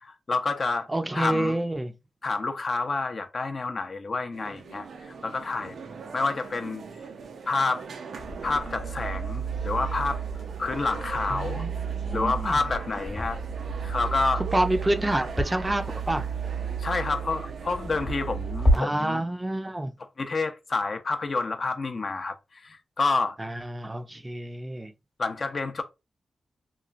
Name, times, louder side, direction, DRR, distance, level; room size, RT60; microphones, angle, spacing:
voice 1, 0.0-0.9 1.1-1.6 2.2-5.8 6.1-6.8 7.5-7.8 8.4-10.2 10.6-11.6 12.1-13.4 13.8-14.4 16.8-19.2 20.2-23.4 25.2-25.8, left 3 dB, 50° left, 0.5 m, -28 dB
voice 2, 0.9-1.9 11.3-12.6 14.3-16.2 18.7-19.9 23.4-24.9, right 1 dB, 20° right, 0.4 m, -28 dB
sound 1, 4.3-18.8, right 5 dB, 85° right, 0.5 m, -42 dB
sound 2, 8.2-18.8, right 3 dB, 35° left, 0.9 m, -31 dB
3.0 x 2.3 x 2.4 m
cardioid pair, 65°, 0 cm